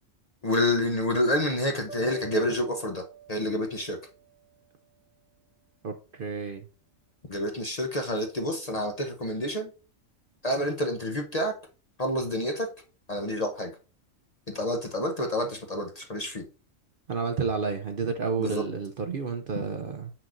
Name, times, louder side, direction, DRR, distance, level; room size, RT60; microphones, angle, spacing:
voice 1, 0.4-3.0 3.3-4.0 7.3-9.7 10.4-11.5 12.0-12.7 13.1-13.7 14.5-16.4 18.4-18.6, left 1 dB, 35° left, 0.7 m, -28 dB
sound 1, 1.9-5.0, right 9 dB, 5° right, 1.3 m, -47 dB
voice 2, 5.8-6.7 17.1-20.1, right 5 dB, 55° right, 0.7 m, -30 dB
7.4 x 6.0 x 2.5 m
omnidirectional pair, 1.4 m